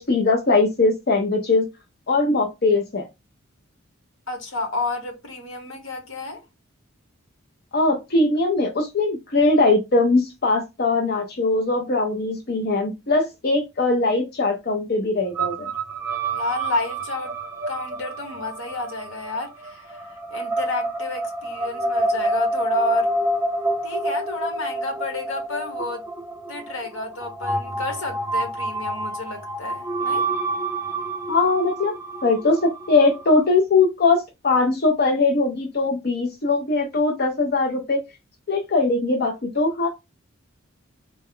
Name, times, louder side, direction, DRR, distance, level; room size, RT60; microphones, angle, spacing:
voice 1, 0.0-1.6 2.1-3.0 7.7-15.7 31.3-31.9 32.2-38.0 38.5-39.9, left 3 dB, 50° left, 0.5 m, -21 dB
voice 2, 4.3-6.4 16.3-17.4 17.7-23.1 23.8-26.1 26.5-30.3, left 3 dB, 75° left, 1.2 m, -31 dB
sound 1, 15.4-33.5, right 1 dB, 15° right, 0.6 m, -28 dB
4.1 x 2.1 x 3.7 m
head